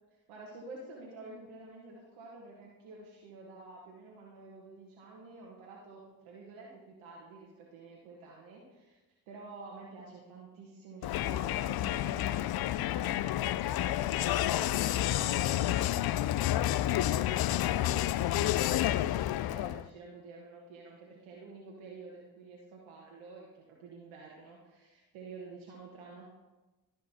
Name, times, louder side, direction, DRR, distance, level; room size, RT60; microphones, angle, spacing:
voice 1, 0.3-9.0 9.3-26.3, right 3 dB, 80° right, -3 dB, 1.4 m, -50 dB
Crowd, 11.0-19.9, left 13 dB, 55° left, 0.5 m, -30 dB
12.5 x 5.4 x 4.2 m, 1.1 s
hypercardioid pair, 40°, 48 cm